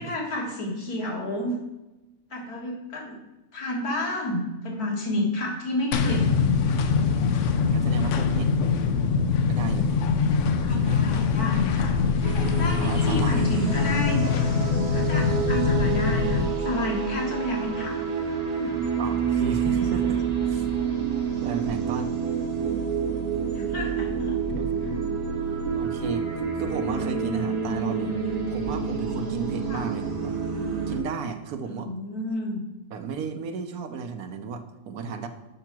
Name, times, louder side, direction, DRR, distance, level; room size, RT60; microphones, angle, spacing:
voice 1, 0.0-1.5 2.3-3.2 3.5-6.4 10.6-12.0 12.5-14.2 14.9-18.0 18.5-18.8 23.5-24.4 24.9-25.0 29.7-29.9 31.7-32.6, left 1 dB, 90° left, -1 dB, 2.3 m, -30 dB
sound 1, 5.9-16.5, left 5 dB, 65° left, 0.9 m, -23 dB
voice 2, 7.3-8.5 9.5-10.0 10.7-11.1 12.8-13.4 19.0-20.7 21.4-22.1 24.5-25.0 25.7-26.2 26.6-30.3 30.9-31.9 32.9-35.3, right 6 dB, 85° right, 6 dB, 1.3 m, -34 dB
sound 2, 12.2-31.0, right 6 dB, 30° right, 1.0 m, -28 dB
6.5 x 5.8 x 6.0 m, 1.0 s
omnidirectional pair, 1.6 m